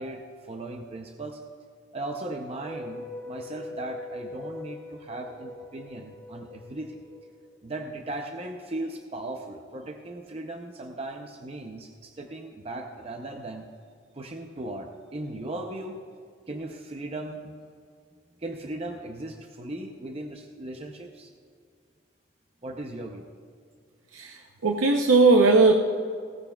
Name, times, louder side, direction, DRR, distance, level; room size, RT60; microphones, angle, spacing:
voice 1, 0.0-1.4 1.9-7.0 7.6-13.6 14.1-16.0 16.5-17.5 18.4-21.3 22.6-23.3, right 2 dB, 30° right, 3 dB, 0.6 m, -37 dB
sound 1, 2.6-7.8, left 2 dB, 5° left, 2.4 m, -42 dB
voice 2, 24.1-25.7, right 3 dB, 85° right, 3 dB, 0.7 m, -19 dB
16.5 x 14.0 x 2.3 m, 2.2 s
head